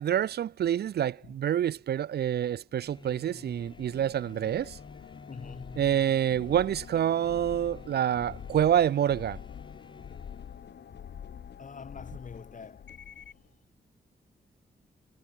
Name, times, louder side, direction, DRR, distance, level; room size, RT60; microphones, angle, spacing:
voice 1, 0.0-4.8 5.8-9.4, right 10 dB, 70° right, 0.4 m, -27 dB
sound 1, 2.8-13.5, left 8 dB, 90° left, 4.9 m, -46 dB
sound 2, 2.8-10.6, left 3 dB, 25° left, 7.8 m, -51 dB
voice 2, 5.3-5.8 11.6-13.0, left 5 dB, 50° left, 2.2 m, -45 dB
wide cardioid pair, 105°, 17 cm